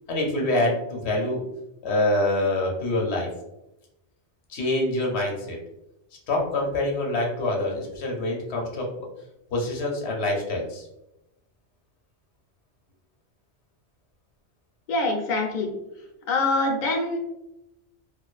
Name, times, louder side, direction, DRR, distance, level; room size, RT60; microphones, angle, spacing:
voice 1, 0.1-1.4 1.8-3.3 4.5-5.6 6.3-8.9 9.5-10.9, left 1 dB, 75° left, 0 dB, 0.9 m, -25 dB
voice 2, 14.9-15.7 16.3-17.2, left 2 dB, 55° left, 0 dB, 0.5 m, -24 dB
2.4 x 2.2 x 2.3 m, 0.90 s
omnidirectional pair, 1.1 m